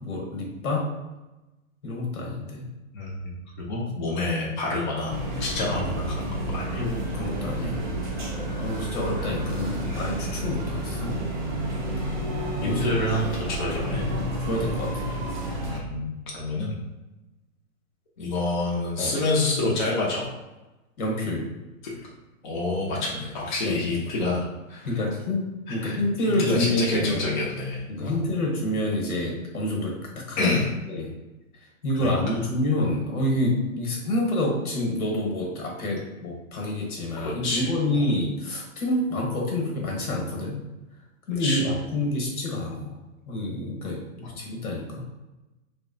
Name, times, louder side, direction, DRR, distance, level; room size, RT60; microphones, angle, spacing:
voice 1, 0.0-0.9 1.8-2.7 5.7-5.8 6.8-7.8 8.6-11.2 11.8-11.9 12.6-12.9 13.7-15.1 19.0-19.1 21.0-21.5 23.6-23.7 24.8-27.2 27.9-30.5 30.9-31.1 31.8-40.6 41.3-43.0 43.3-45.0, left 1 dB, 85° left, 0 dB, 1.1 m, -28 dB
voice 2, 2.9-6.8 12.6-14.0 15.6-16.0 16.3-16.8 18.2-20.3 21.8-22.0 22.4-25.0 25.7-28.3 30.4-30.7 32.0-32.4 37.2-38.1 41.4-41.7 44.2-44.4, left 2 dB, 35° left, -4 dB, 0.4 m, -28 dB
sound 1, 5.1-15.8, right 1 dB, 35° right, 0.4 m, -30 dB
2.7 x 2.1 x 2.5 m, 1.1 s
hypercardioid pair, 155°, 42 cm